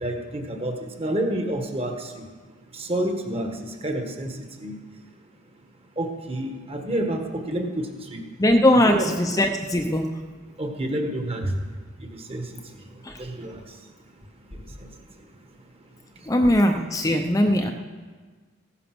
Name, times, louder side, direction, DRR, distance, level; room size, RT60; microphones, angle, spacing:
voice 1, 0.0-2.2 2.8-3.5 3.8-4.3 4.6-4.8 6.0-8.2 8.9-9.1 10.6-11.6 12.3-12.4 13.2-13.5, right 1 dB, 30° right, 4 dB, 1.5 m, -28 dB
voice 2, 8.4-10.1 13.0-13.2 16.3-17.7, left 1 dB, 15° left, 4 dB, 0.7 m, -20 dB
16.0 x 10.5 x 6.1 m, 1.5 s
head